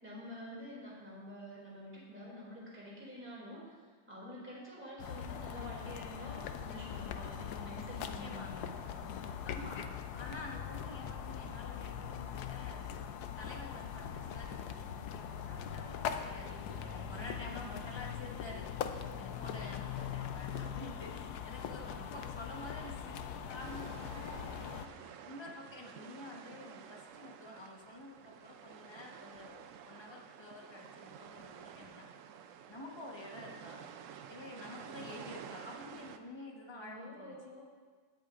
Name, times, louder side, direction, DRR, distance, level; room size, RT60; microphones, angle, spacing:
voice 1, 0.0-3.8 4.1-9.6 16.2-17.7 19.6-20.1 21.5-22.1 36.8-37.6, left 1 dB, 5° right, -5 dB, 2.4 m, -49 dB
sound 1, 5.0-24.9, left 8 dB, 70° left, 1.1 m, -41 dB
voice 2, 7.9-8.5 9.4-12.9 13.4-18.7 19.2-32.1 32.7-33.9 34.3-37.4, left 2 dB, 20° left, -1 dB, 1.0 m, -49 dB
sound 2, 23.6-36.2, right 8 dB, 70° right, 0.7 m, -51 dB
17.5 x 8.0 x 2.5 m, 1.5 s
omnidirectional pair, 1.8 m